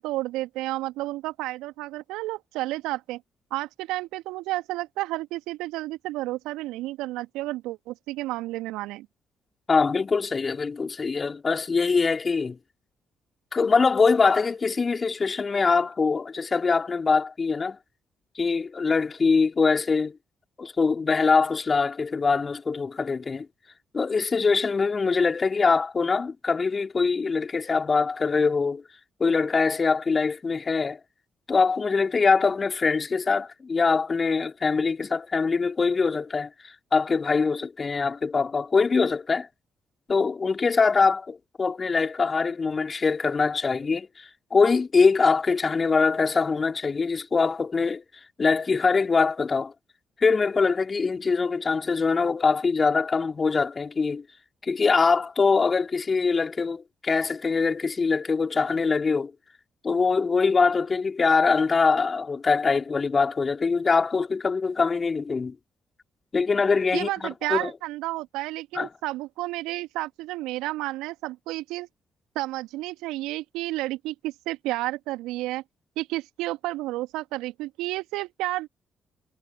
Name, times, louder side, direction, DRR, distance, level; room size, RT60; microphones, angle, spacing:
voice 1, 0.0-3.2 3.5-9.1 66.9-71.9 72.4-75.6 76.0-78.7, right 18 dB, 75° right, 2.2 m, -31 dB
voice 2, 9.7-12.6 13.5-17.8 18.4-20.2 20.6-23.5 23.9-28.8 29.2-31.0 31.5-39.5 40.1-48.0 48.4-49.7 50.2-54.2 54.6-59.3 59.8-65.6 66.3-67.7 68.8-68.9, left 4 dB, 40° left, 3.7 m, -23 dB
hypercardioid pair, 40°, 0 cm